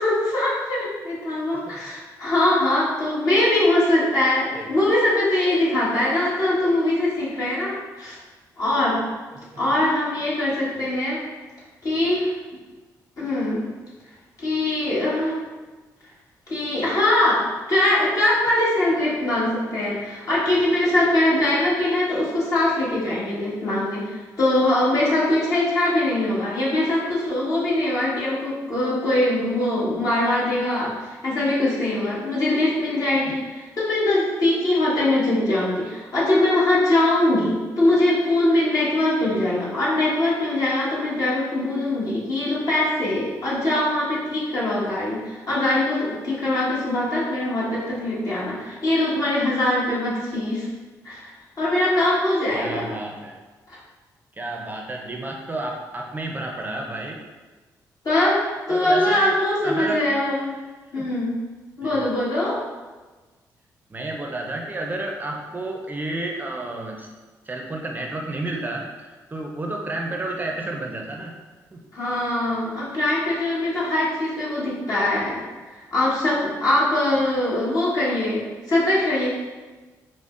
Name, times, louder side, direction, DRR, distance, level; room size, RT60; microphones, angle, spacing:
voice 1, 0.0-8.2 8.6-9.0 9.6-11.2 11.8-12.3 13.2-13.7 14.4-15.4 16.5-50.7 51.0-52.9 53.7-53.8 58.0-60.5 60.9-61.3 61.8-62.6 71.9-75.4 75.7-79.3, left 1 dB, 55° left, -7 dB, 1.4 m, -22 dB
voice 2, 52.5-53.4 54.4-57.2 58.7-59.4 59.6-60.0 61.0-61.1 61.8-62.1 63.9-67.1 67.5-71.4 71.7-71.8, right 2 dB, 25° right, 1 dB, 0.4 m, -31 dB
5.1 x 2.0 x 2.4 m, 1.3 s
cardioid pair, 70°, 7 cm